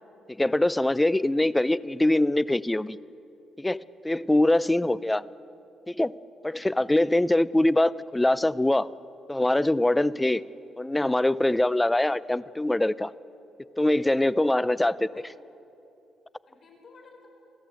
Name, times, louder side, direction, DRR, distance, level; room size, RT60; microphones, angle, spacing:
voice 1, 0.3-3.0 3.6-5.2 5.9-6.1 6.4-8.9 9.3-10.4 10.8-13.1 13.8-15.0, left 1 dB, 10° left, 19 dB, 0.5 m, -23 dB
voice 2, 4.3-5.1 6.5-6.8 10.1-10.3 14.9-15.4 16.5-17.3, left 3 dB, 50° left, 2 dB, 5.7 m, -55 dB
28.5 x 13.0 x 8.1 m, 2.8 s
cardioid pair, 90°, 0 cm